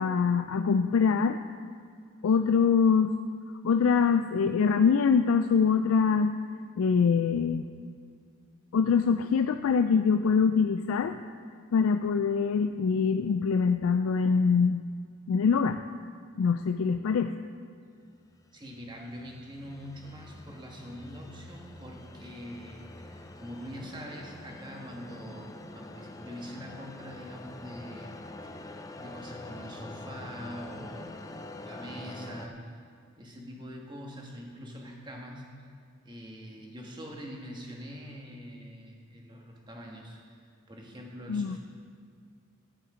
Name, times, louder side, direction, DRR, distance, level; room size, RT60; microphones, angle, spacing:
voice 1, 0.0-1.4 2.2-3.2 3.6-6.3 6.8-7.7 8.7-11.1 11.7-14.8 15.3-15.8 16.4-17.3 41.3-41.6, left 5 dB, 80° left, 8 dB, 0.3 m, -24 dB
sound 1, 18.4-32.5, left 2 dB, 15° left, 0.5 m, -45 dB
voice 2, 18.5-28.1 28.4-28.6 29.0-32.9 33.2-35.7 36.0-41.6, equal, 20° right, 0 dB, 1.5 m, -44 dB
12.0 x 10.0 x 5.0 m, 2.3 s
head